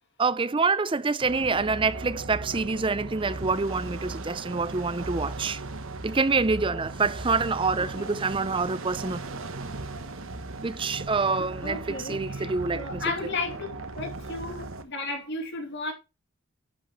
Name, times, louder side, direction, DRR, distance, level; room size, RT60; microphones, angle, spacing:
voice 1, 0.2-5.6 6.0-9.2 10.6-13.0, right 4 dB, 20° right, 0.5 m, -26 dB
sound 1, 1.2-14.8, right 2 dB, 60° right, 1.2 m, -37 dB
voice 2, 11.6-13.7 13.9-15.9, left 3 dB, 50° left, 2.8 m, -34 dB
11.5 x 5.7 x 3.2 m
head